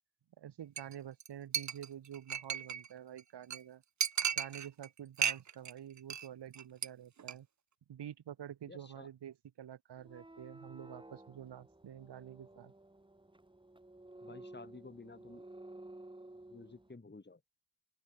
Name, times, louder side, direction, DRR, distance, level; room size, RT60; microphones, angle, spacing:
voice 1, 0.4-3.8 4.4-7.5 7.9-12.7, right 10 dB, 65° right, 0.8 m, -48 dB
Chink clink, 0.8-0.9 1.2-1.3 1.5-2.9 3.2-3.3 3.5-3.6 4.0-4.9 5.2-5.7 6.0-6.3 6.5-6.9 7.2-7.3, right 8 dB, 40° right, 0.6 m, -35 dB
voice 2, 8.7-9.1 14.2-15.4 16.5-17.4, left 3 dB, 25° left, 2.0 m, -52 dB
sound 1, 10.0-16.9, right 2 dB, 10° right, 1.1 m, -54 dB
open air
cardioid pair, 60°, 45 cm